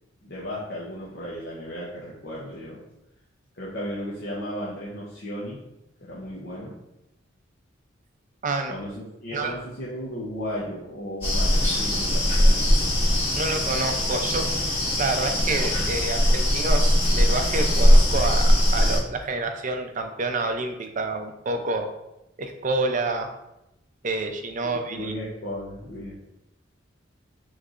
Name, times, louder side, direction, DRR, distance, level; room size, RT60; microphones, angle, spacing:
voice 1, 0.2-2.8 3.5-5.6 6.0-6.8 8.7-13.0 24.6-26.3, equal, 55° left, -6 dB, 0.9 m, -35 dB
voice 2, 8.4-8.7 9.3-9.5 13.4-14.5 15.0-21.9 22.4-23.3 24.0-25.1, right 3 dB, 40° right, 6 dB, 0.5 m, -28 dB
sound 1, 11.2-19.0, equal, 30° left, 1.5 m, -20 dB
6.4 x 3.2 x 2.5 m, 0.89 s
head